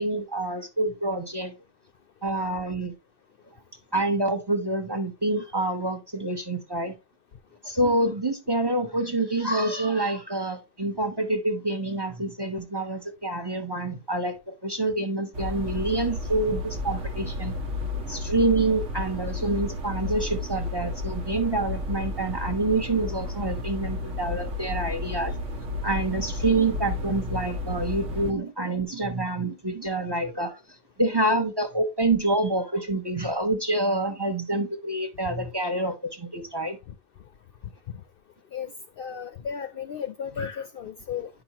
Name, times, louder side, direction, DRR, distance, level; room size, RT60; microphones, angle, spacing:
voice 1, 0.0-1.5 2.2-2.9 3.9-6.9 7.6-17.6 18.1-25.3 25.8-30.6 31.0-36.8, right 2 dB, 25° right, 0.8 m, -27 dB
sound 1, 15.3-28.3, left 2 dB, 85° right, 1.5 m, -32 dB
voice 2, 39.0-41.3, left 7 dB, 60° left, 0.6 m, -34 dB
9.3 x 6.0 x 2.9 m
omnidirectional pair, 1.2 m